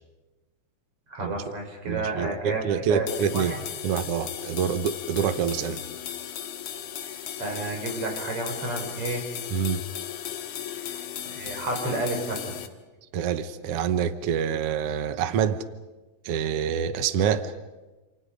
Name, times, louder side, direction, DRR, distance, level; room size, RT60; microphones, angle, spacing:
voice 1, 1.1-3.6 7.0-9.3 10.7-12.6, right 2 dB, 40° right, 2 dB, 5.6 m, -31 dB
voice 2, 1.9-3.5 3.8-5.8 9.5-9.8 13.1-15.6 16.2-17.5, right 8 dB, 85° right, 11 dB, 1.3 m, -26 dB
sound 1, 3.1-12.7, left 10 dB, 65° left, 2.6 m, -36 dB
28.0 x 28.0 x 5.1 m, 1.1 s
omnidirectional pair, 4.1 m